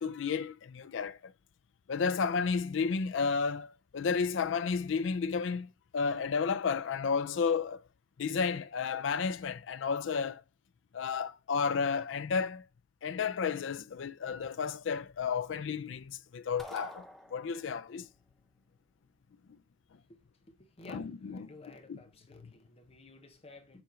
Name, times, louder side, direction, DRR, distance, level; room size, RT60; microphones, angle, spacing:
voice 1, 0.0-1.3 1.9-7.8 8.2-10.4 10.9-12.6 13.0-17.1 17.3-18.1 20.9-22.0 22.4-22.5, left 5 dB, 85° left, 0.4 m, -32 dB
sound 1, 16.6-17.9, equal, ahead, 0.7 m, -47 dB
voice 2, 21.3-23.8, left 3 dB, 30° left, 0.9 m, -53 dB
7.0 x 3.1 x 5.0 m
head